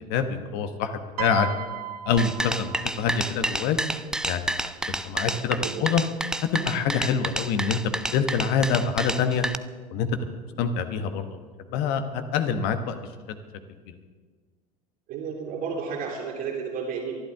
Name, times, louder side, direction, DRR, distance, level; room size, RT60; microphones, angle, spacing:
voice 1, 0.1-1.5 2.1-3.8 4.3-4.6 4.9-6.0 6.5-9.5 9.9-10.1 10.6-11.3 11.7-13.0 13.3-13.4, left 6 dB, 55° left, 8 dB, 1.3 m, -26 dB
Piano, 1.2-3.5 4.6-4.8, right 10 dB, 75° right, 0.9 m, -35 dB
sound 1, 2.2-9.6, right 1 dB, 5° right, 0.5 m, -29 dB
voice 2, 5.5-6.0 15.1-17.2, right 6 dB, 55° right, -6 dB, 3.0 m, -32 dB
23.5 x 11.5 x 3.7 m, 1.5 s
figure-of-eight pair, 75°, 20 cm